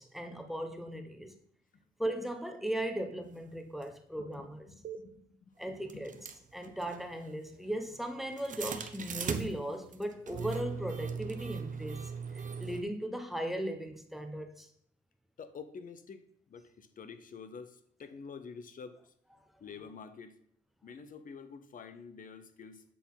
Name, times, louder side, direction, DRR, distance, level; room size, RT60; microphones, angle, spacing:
voice 1, 0.0-1.3 2.0-4.7 5.6-6.2 6.5-12.1 12.3-14.7, right 1 dB, ahead, 0.9 m, -37 dB
sound 1, 3.8-3.9 4.8-5.0 5.9-12.8, right 6 dB, 40° right, 0.7 m, -39 dB
voice 2, 4.7-5.5 5.9-6.2 15.4-16.2 16.5-19.0 19.6-20.4 20.8-22.8, left 5 dB, 45° left, 0.7 m, -48 dB
8.3 x 3.9 x 4.1 m
cardioid pair, 90°, 20 cm